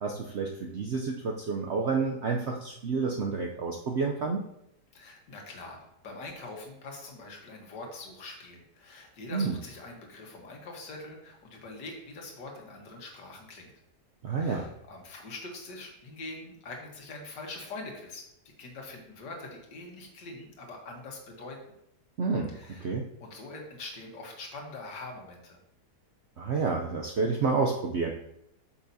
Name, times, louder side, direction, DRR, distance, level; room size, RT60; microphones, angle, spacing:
voice 1, 0.0-4.4 9.3-9.6 14.2-14.7 22.2-22.5 22.8-23.0 26.4-28.1, right 4 dB, 70° right, 1 dB, 0.6 m, -29 dB
voice 2, 4.9-13.7 14.4-18.2 18.6-21.6 22.5-25.6, left 2 dB, 80° left, 1 dB, 1.9 m, -43 dB
8.3 x 5.9 x 2.7 m, 0.79 s
omnidirectional pair, 1.8 m